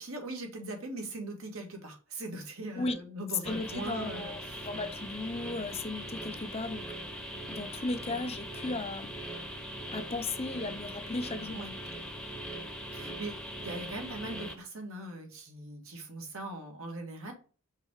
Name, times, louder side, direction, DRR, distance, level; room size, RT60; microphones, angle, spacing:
voice 1, 0.0-4.7 11.5-11.7 12.9-17.3, right 2 dB, 75° right, 2 dB, 1.8 m, -41 dB
voice 2, 3.4-6.8 7.5-9.1 9.9-11.6, left 3 dB, 30° left, 9 dB, 0.6 m, -36 dB
sound 1, 3.4-14.6, equal, 5° left, 0.9 m, -41 dB
5.6 x 3.7 x 4.6 m, 0.37 s
head